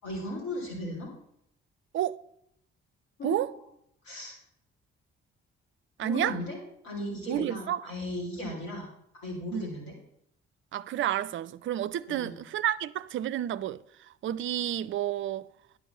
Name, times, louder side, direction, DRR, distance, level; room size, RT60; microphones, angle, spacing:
voice 1, 0.0-1.1 3.2-3.4 4.0-4.3 6.0-6.6 6.8-8.9 9.1-9.9 12.1-12.4, left 1 dB, 70° left, 3.4 m, -36 dB
voice 2, 6.0-6.4 7.3-7.8 8.4-8.5 9.5-9.7 10.7-13.8 14.2-15.5, right 11 dB, 45° right, 0.4 m, -30 dB
9.9 x 4.9 x 7.2 m
figure-of-eight pair, 40°, 29 cm